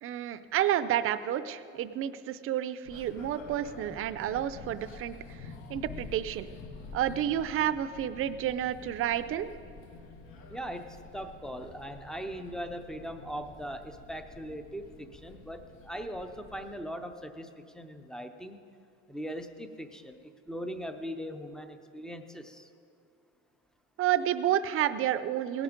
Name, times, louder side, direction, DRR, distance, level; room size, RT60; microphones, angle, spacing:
voice 1, 0.0-5.4 5.7-6.5 6.9-9.5 24.0-25.6, right 11 dB, 45° right, 14 dB, 0.5 m, -30 dB
sound 1, 2.8-16.8, left 4 dB, 75° left, 1.5 m, -48 dB
voice 2, 10.5-18.6 19.1-20.2 20.5-22.7, equal, ahead, 8 dB, 0.5 m, -40 dB
18.5 x 11.0 x 5.1 m, 2.5 s
cardioid pair, 170°, 30 cm